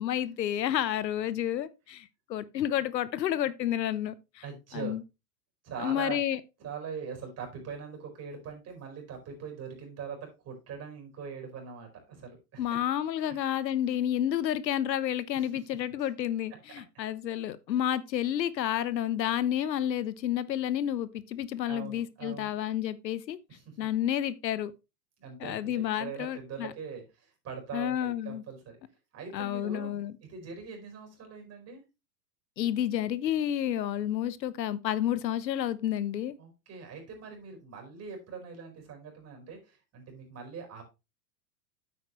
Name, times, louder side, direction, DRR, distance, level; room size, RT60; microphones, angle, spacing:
voice 1, 0.0-4.1 4.7-5.0 5.8-6.4 12.6-23.4 23.8-24.7 25.4-26.7 27.7-28.4 29.3-30.1 32.6-36.4, left 11 dB, 85° left, 0.9 m, -30 dB
voice 2, 4.4-5.0 5.6-6.2 6.6-12.8 13.3-13.4 15.3-15.5 16.7-17.0 21.7-22.5 23.5-23.9 25.2-28.8 29.1-30.0 30.3-31.8 36.4-40.8, right 6 dB, 30° right, 4.6 m, -42 dB
9.3 x 8.4 x 3.1 m
hypercardioid pair, 115°, 49 cm